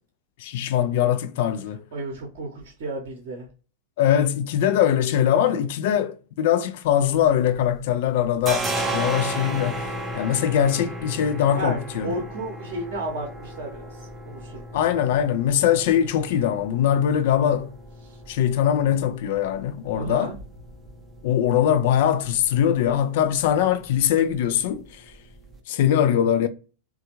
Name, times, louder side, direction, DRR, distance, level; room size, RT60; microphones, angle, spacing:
voice 1, 0.4-1.8 4.0-12.1 14.7-17.7 18.3-20.3 21.2-24.8 25.7-26.5, left 10 dB, 50° left, 0.3 m, -22 dB
voice 2, 1.9-3.5 11.5-14.7 18.0-18.2 19.9-20.3, right 2 dB, 50° right, 0.8 m, -33 dB
sound 1, 6.9-7.8 8.1-25.6, right 1 dB, 20° right, 0.6 m, -35 dB
3.2 x 2.2 x 2.9 m
figure-of-eight pair, 90°, 0 cm